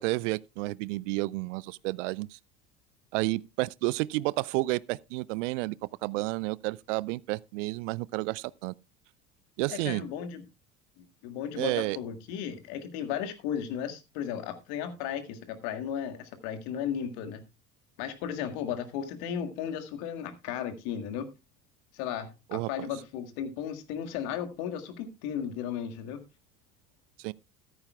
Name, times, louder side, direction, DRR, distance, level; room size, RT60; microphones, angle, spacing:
voice 1, 0.0-2.4 3.1-5.8 6.0-8.7 9.6-10.0 11.6-12.0 22.5-22.9 27.2-27.3, right 21 dB, 55° right, 0.5 m, -31 dB
voice 2, 9.7-10.4 11.0-17.4 18.0-21.3 21.9-26.2, left 8 dB, 55° left, 1.9 m, -35 dB
14.0 x 12.5 x 2.3 m
figure-of-eight pair, 65°, 44 cm